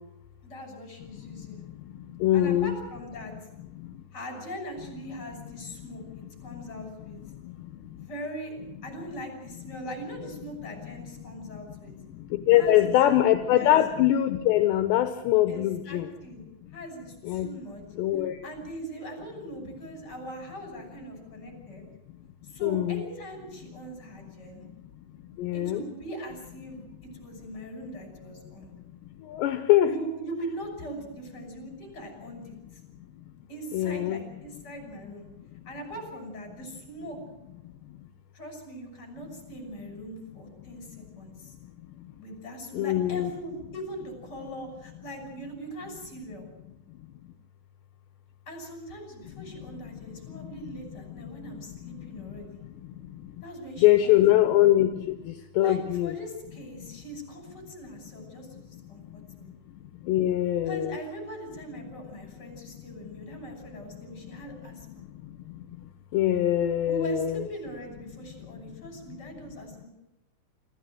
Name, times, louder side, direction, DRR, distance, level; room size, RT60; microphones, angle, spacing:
voice 1, 0.4-1.6 2.3-3.3 4.1-7.2 7.9-8.5 8.8-11.9 12.5-13.2 13.6-13.8 15.5-16.4 16.7-17.8 18.4-21.8 22.4-24.6 25.5-28.7 29.8-32.6 33.5-35.3 35.6-37.2 38.3-41.5 42.2-46.5 48.5-52.6 53.4-54.4 55.4-59.5 60.7-65.0 66.8-69.9, right 1 dB, 20° left, 4 dB, 6.3 m, -40 dB
voice 2, 2.2-2.8 12.5-16.1 17.2-17.5 18.0-18.4 22.6-23.0 25.4-25.8 29.3-29.9 33.7-34.2 42.7-43.3 51.8-51.9 53.8-54.9 55.3-56.1 60.1-61.0 66.1-67.4, left 13 dB, 75° left, 8 dB, 3.0 m, -22 dB
26.0 x 15.0 x 7.8 m, 0.95 s
omnidirectional pair, 5.4 m